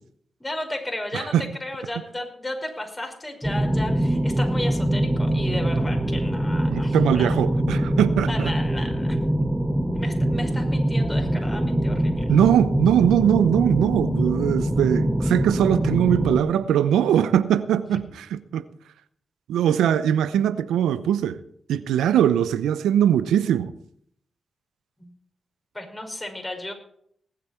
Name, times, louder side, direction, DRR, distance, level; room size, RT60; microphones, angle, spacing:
voice 1, 0.4-7.3 8.2-9.2 9.9-12.3 25.0-25.1 25.7-26.7, left 1 dB, 25° left, 5.4 m, -34 dB
voice 2, 1.1-1.5 6.7-8.5 12.3-18.6 19.5-21.4 21.7-23.7, right 10 dB, 85° right, 0.7 m, -21 dB
sound 1, 3.4-16.4, right 1 dB, 5° right, 2.1 m, -23 dB
19.5 x 8.7 x 4.4 m
supercardioid pair, 40°, 0 cm